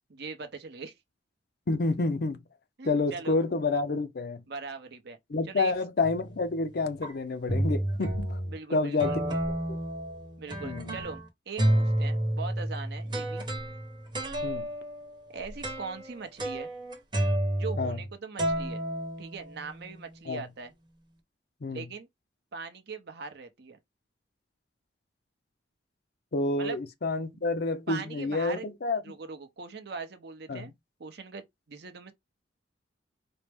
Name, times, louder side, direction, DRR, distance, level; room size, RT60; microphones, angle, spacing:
voice 1, 0.1-0.9 2.8-3.4 4.5-5.2 5.5-5.7 8.5-9.2 10.4-13.4 15.3-16.7 17.5-18.8 19.2-20.7 21.7-22.1 22.5-23.8 26.6-26.8 27.9-28.6 29.0-30.7 31.0-32.1, right 4 dB, 60° right, 0.7 m, -40 dB
voice 2, 1.7-2.4 2.8-4.4 5.3-8.4 8.7-9.2 9.7-9.8 10.6-11.0 14.4-14.7 17.8-18.0 20.3-20.4 21.6-21.8 26.3-29.0 30.5-30.6, left 3 dB, 55° left, 0.5 m, -29 dB
sound 1, 6.0-6.4 7.0-7.1 7.5-8.6 9.0-11.2 11.6-18.1 18.4-19.8, right 1 dB, 25° right, 1.0 m, -30 dB
4.3 x 2.0 x 3.4 m
head